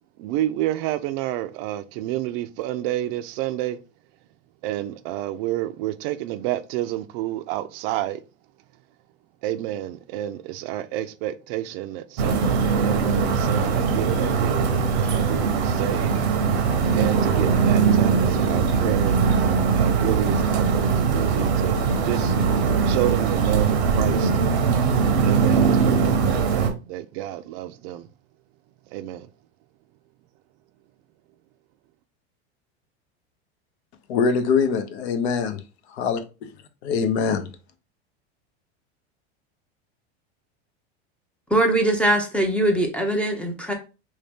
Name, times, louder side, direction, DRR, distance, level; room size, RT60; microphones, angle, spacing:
voice 1, 0.2-3.8 4.6-8.2 9.4-16.1 16.9-19.2 19.7-22.3 22.8-24.3 25.2-28.1 28.9-29.3, right 13 dB, 55° right, 0.5 m, -29 dB
sound 1, 12.2-26.7, right 5 dB, 90° right, 0.9 m, -21 dB
voice 2, 34.1-35.6 36.0-36.2 36.8-37.5, left 5 dB, 80° left, 0.7 m, -23 dB
voice 3, 41.5-43.7, right 1 dB, 5° left, 0.5 m, -21 dB
3.2 x 2.8 x 3.4 m
supercardioid pair, 130°, 32 cm